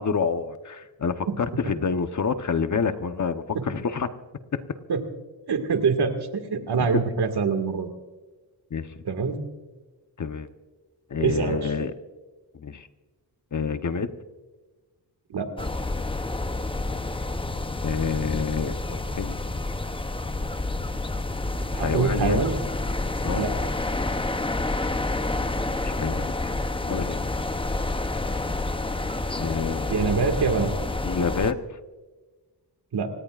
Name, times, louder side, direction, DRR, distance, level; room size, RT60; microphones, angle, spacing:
voice 1, 0.0-4.1 4.5-4.6 8.7-9.0 10.2-10.5 11.1-11.9 12.5-12.9 13.5-14.1 17.8-19.4 21.7-22.5 23.2-23.5 25.8-26.4 26.8-27.3 29.4-29.9 31.0-31.8, left 5 dB, 45° left, 9 dB, 1.0 m, -28 dB
voice 2, 5.5-7.9 9.1-9.4 11.2-11.7 15.3-15.5 21.8-22.6 23.3-23.5 29.9-30.8 32.9-33.1, right 5 dB, 70° right, 6 dB, 2.1 m, -24 dB
sound 1, 15.6-31.5, left 2 dB, 15° left, 0.8 m, -29 dB
27.5 x 18.0 x 2.5 m, 1.2 s
cardioid pair, 90°, 41 cm